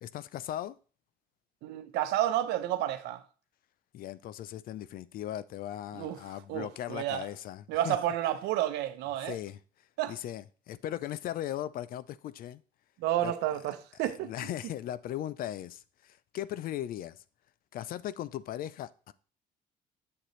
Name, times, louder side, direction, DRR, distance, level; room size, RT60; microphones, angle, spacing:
voice 1, 0.0-0.8 3.9-8.0 9.3-9.6 10.1-12.6 13.2-13.3 14.0-17.2 17.7-19.1, left 12 dB, 60° left, 0.4 m, -38 dB
voice 2, 1.6-3.2 5.9-6.2 6.5-7.3 7.7-9.4 10.0-10.2 13.0-14.3, right 12 dB, 90° right, 0.7 m, -30 dB
7.7 x 6.5 x 3.1 m
cardioid pair, 110°, 17 cm